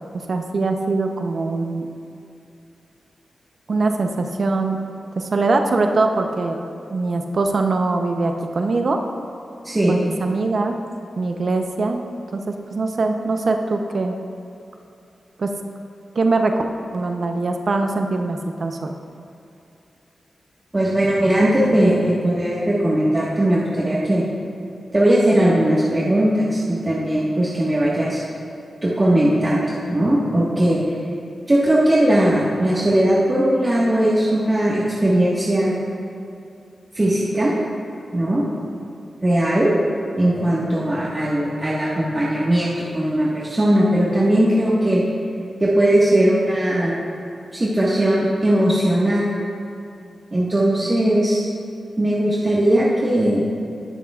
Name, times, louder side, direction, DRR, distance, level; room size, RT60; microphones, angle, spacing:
voice 1, 0.3-1.9 3.7-4.8 5.2-6.6 6.9-9.0 9.9-10.7 11.2-12.0 12.3-12.4 12.7-14.2 15.4-15.5 16.1-16.5 16.9-19.0, right 3 dB, 65° right, 4 dB, 0.7 m, -22 dB
voice 2, 20.7-24.2 24.9-28.2 28.8-31.0 31.5-35.7 36.9-37.5 38.1-38.4 39.2-39.7 40.2-45.0 45.6-46.9 47.5-49.3 50.3-51.4 52.0-53.4, right 1 dB, 30° right, -7 dB, 1.5 m, -18 dB
18.0 x 7.0 x 2.4 m, 2.6 s
cardioid pair, 55°, 0 cm